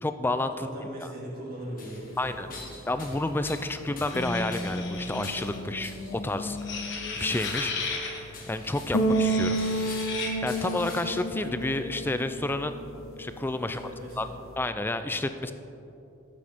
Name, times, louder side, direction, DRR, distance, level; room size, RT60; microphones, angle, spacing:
voice 1, 0.0-0.7 2.2-2.5 2.9-7.7 8.5-9.6 10.4-12.8 13.2-13.9 14.2-14.3 14.6-15.5, left 2 dB, 10° left, 9 dB, 0.3 m, -30 dB
voice 2, 0.5-2.7 5.7-5.8 13.6-14.4, equal, 45° right, -4 dB, 2.4 m, -40 dB
sound 1, 1.5-11.3, left 3 dB, 40° left, 1.5 m, -46 dB
sound 2, 2.0-14.6, right 1 dB, 85° left, 1.0 m, -33 dB
sound 3, 4.1-5.6 6.6-8.2 9.0-10.3, left 4 dB, 60° left, 1.3 m, -36 dB
13.0 x 7.6 x 3.6 m, 2.9 s
head